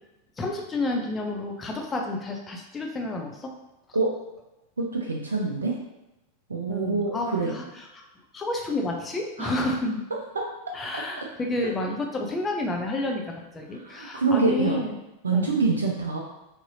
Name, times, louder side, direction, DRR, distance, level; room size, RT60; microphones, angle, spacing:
voice 1, 0.4-3.5 6.7-8.0 8.3-10.0 10.7-15.0 15.3-15.5, left 2 dB, 15° left, 1 dB, 0.6 m, -30 dB
voice 2, 4.8-5.7 6.5-7.6 9.4-9.5 10.4-10.5 13.8-14.8 15.2-16.2, right 4 dB, 75° right, 0 dB, 0.4 m, -25 dB
3.8 x 2.9 x 2.7 m, 0.93 s
figure-of-eight pair, 90°, 0 cm